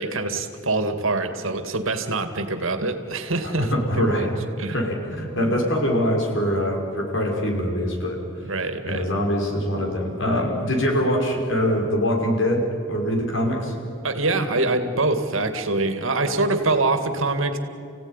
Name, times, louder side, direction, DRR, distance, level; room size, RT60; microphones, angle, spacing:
voice 1, 0.0-3.7 4.0-4.3 4.6-4.8 8.4-9.0 14.0-17.6, right 2 dB, 75° right, 8 dB, 2.2 m, -24 dB
voice 2, 3.6-4.3 4.7-8.2 8.8-13.8, equal, 65° left, 0 dB, 5.6 m, -23 dB
30.0 x 17.0 x 9.9 m, 2.6 s
head